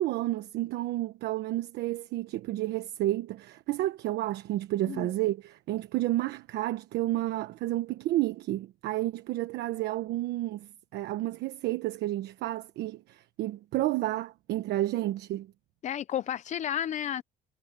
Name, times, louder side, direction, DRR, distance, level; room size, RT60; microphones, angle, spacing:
voice 1, 0.0-15.5, right 15 dB, 80° right, 1.2 m, -31 dB
voice 2, 15.8-17.2, left 10 dB, 45° left, 0.5 m, -32 dB
cardioid pair, 110°, 17 cm